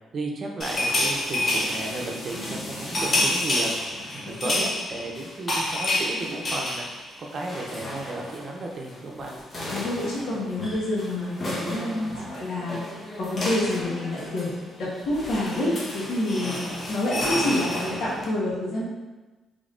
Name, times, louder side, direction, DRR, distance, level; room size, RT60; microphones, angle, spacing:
voice 1, 0.0-3.9 4.2-9.3 9.7-10.0 10.3-10.4, right 2 dB, 45° right, 0 dB, 0.7 m, -34 dB
sound 1, 0.6-8.5 8.7-8.9 9.2-18.3, left 1 dB, 40° left, 0.9 m, -30 dB
voice 2, 4.2-4.6 9.6-12.8 13.2-14.5 14.8-18.8, left 1 dB, 75° left, -7 dB, 1.3 m, -28 dB
3.6 x 3.3 x 2.6 m, 1.2 s
cardioid pair, 90°, 0 cm